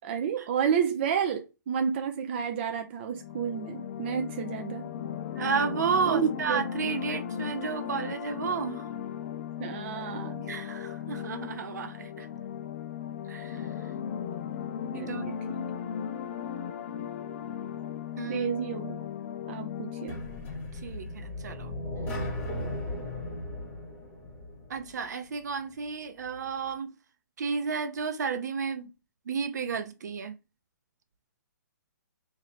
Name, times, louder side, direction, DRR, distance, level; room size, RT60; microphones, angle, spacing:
voice 1, 0.0-4.9 6.0-6.6 9.6-10.4 14.9-15.7 18.2-19.0 19.5-20.2, right 7 dB, 35° right, 0.4 m, -31 dB
sound 1, 3.1-20.5, left 8 dB, 35° left, 0.4 m, -37 dB
voice 2, 5.4-8.9 10.4-12.3 13.3-13.7 14.9-15.3 18.2-18.5 20.8-21.7 24.7-26.9 27.4-28.9 29.3-30.3, right 5 dB, 65° right, 0.7 m, -32 dB
sound 2, 20.1-25.0, left 1 dB, 15° left, 1.1 m, -36 dB
3.0 x 2.7 x 4.1 m
hypercardioid pair, 160°, 10 cm